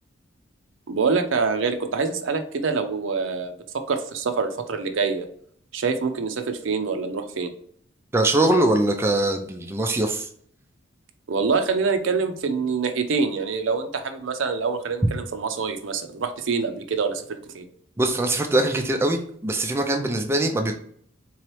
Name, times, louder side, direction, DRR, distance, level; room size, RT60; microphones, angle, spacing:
voice 1, 0.9-3.5 3.9-5.3 5.7-7.5 11.3-17.7, right 5 dB, 75° right, 8 dB, 0.5 m, -25 dB
voice 2, 8.1-10.3 18.0-20.7, right 1 dB, 15° right, 4 dB, 0.4 m, -22 dB
3.7 x 3.1 x 3.0 m, 0.64 s
head